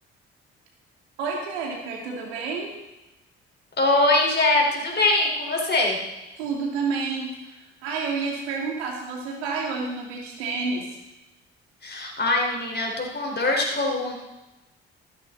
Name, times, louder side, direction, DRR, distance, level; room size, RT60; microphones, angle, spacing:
voice 1, 1.2-2.7 6.4-10.9, right 4 dB, 85° right, 0 dB, 2.5 m, -29 dB
voice 2, 3.8-6.0 11.8-14.1, left 2 dB, 35° left, 0 dB, 4.8 m, -22 dB
15.0 x 12.5 x 4.1 m, 0.99 s
hypercardioid pair, 50°, 31 cm